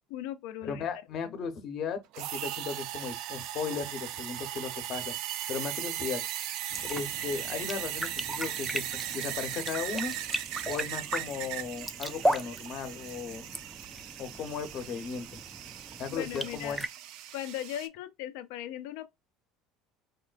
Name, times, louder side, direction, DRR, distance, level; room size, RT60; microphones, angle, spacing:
voice 1, 0.1-0.8 1.2-1.3 16.1-16.8 17.3-19.1, left 12 dB, 80° left, 0.5 m, -38 dB
voice 2, 0.6-5.1 5.5-6.2 6.9-10.2 10.7-13.6 14.2-15.4 16.0-16.8, left 6 dB, 55° left, 0.9 m, -36 dB
sound 1, 2.1-17.9, right 12 dB, 70° right, 0.4 m, -38 dB
sound 2, 6.7-16.9, right 1 dB, 5° right, 0.4 m, -37 dB
3.6 x 2.2 x 2.4 m
supercardioid pair, 95°, 0 cm